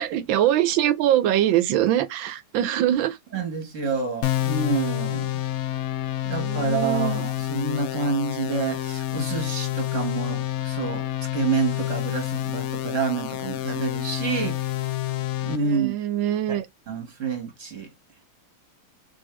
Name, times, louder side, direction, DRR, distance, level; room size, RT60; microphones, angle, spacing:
voice 1, 0.0-3.2 6.2-7.3 15.6-16.7, right 12 dB, 85° right, 1.4 m, -23 dB
voice 2, 3.3-5.3 6.3-11.0 11.3-14.7 15.4-15.9 16.5-16.6 16.9-17.9, right 5 dB, 45° right, 1.5 m, -28 dB
sound 1, 4.2-15.6, left 14 dB, 85° left, 0.7 m, -28 dB
3.6 x 3.6 x 3.1 m
omnidirectional pair, 2.1 m